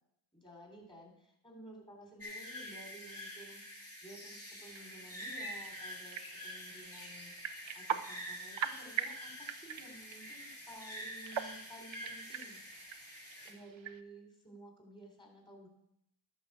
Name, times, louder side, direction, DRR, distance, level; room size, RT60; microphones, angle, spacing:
voice 1, 0.3-12.9 13.4-15.7, right 1 dB, 10° left, 1 dB, 3.9 m, -54 dB
sound 1, 2.2-13.5, equal, 30° left, 3.1 m, -47 dB
sound 2, 4.7-14.0, right 8 dB, 65° right, 0.8 m, -43 dB
11.5 x 5.7 x 6.8 m, 0.78 s
cardioid pair, 45°, 49 cm